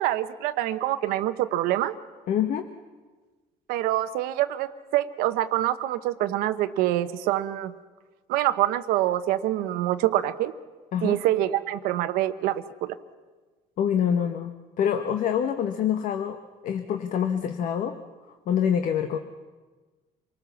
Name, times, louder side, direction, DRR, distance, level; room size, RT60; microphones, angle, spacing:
voice 1, 0.0-1.9 3.7-7.7 8.3-10.5 11.0-13.0, right 14 dB, 90° right, 10 dB, 1.0 m, -25 dB
voice 2, 2.3-2.7 10.9-11.2 13.8-18.0 18.5-19.2, left 8 dB, 60° left, 7 dB, 1.2 m, -26 dB
26.5 x 19.0 x 7.1 m, 1.3 s
cardioid pair, 130°, 15 cm